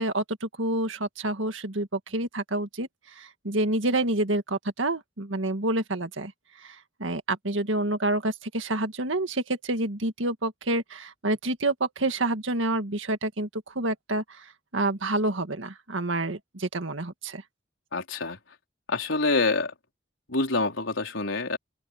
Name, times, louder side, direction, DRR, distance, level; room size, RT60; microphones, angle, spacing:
voice 1, 0.0-6.3 6.6-17.4, right 2 dB, 85° right, 1.9 m, -28 dB
voice 2, 17.9-18.4 18.9-19.7 20.3-21.6, left 3 dB, 90° left, 4.2 m, -26 dB
open air
head